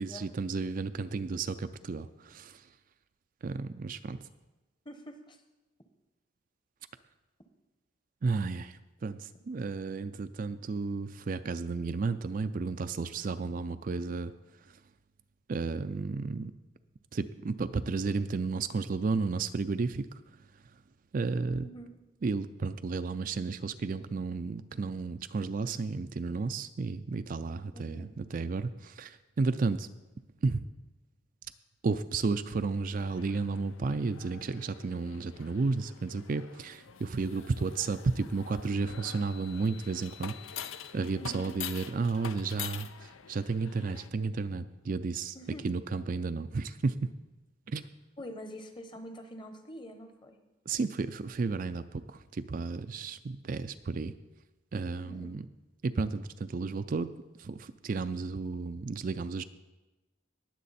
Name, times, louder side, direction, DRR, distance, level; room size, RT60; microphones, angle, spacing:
voice 1, 0.0-2.5 3.4-4.2 8.2-8.7 9.0-14.3 15.5-16.5 17.1-20.1 21.1-21.7 22.2-29.9 30.4-30.6 31.8-40.3 40.9-45.3 45.6-47.1 47.7-47.9 50.7-54.1 54.7-55.4 55.8-57.1 57.4-59.4, right 4 dB, 45° right, 10 dB, 0.4 m, -32 dB
voice 2, 4.8-5.4 21.6-21.9 27.7-28.1 41.2-41.5 45.3-45.7 48.2-50.4 55.0-55.4, equal, 25° left, 7 dB, 1.1 m, -45 dB
sound 1, 33.0-44.1, left 9 dB, 80° left, 0.6 m, -46 dB
19.5 x 7.4 x 4.2 m, 1.1 s
head